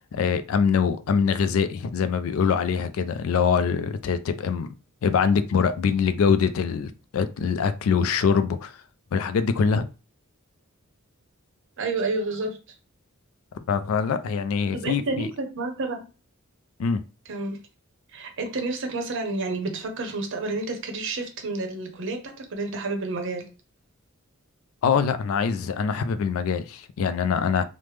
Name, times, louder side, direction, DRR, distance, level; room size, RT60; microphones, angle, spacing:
voice 1, 0.1-4.7 5.0-8.7 9.1-9.9 13.7-15.3 16.8-17.0 24.8-27.6, left 6 dB, 70° left, 0.3 m, -23 dB
voice 2, 11.8-12.6 14.7-16.0 17.3-17.6 18.1-23.5, right 3 dB, 60° right, 0.7 m, -30 dB
3.2 x 2.0 x 3.2 m
head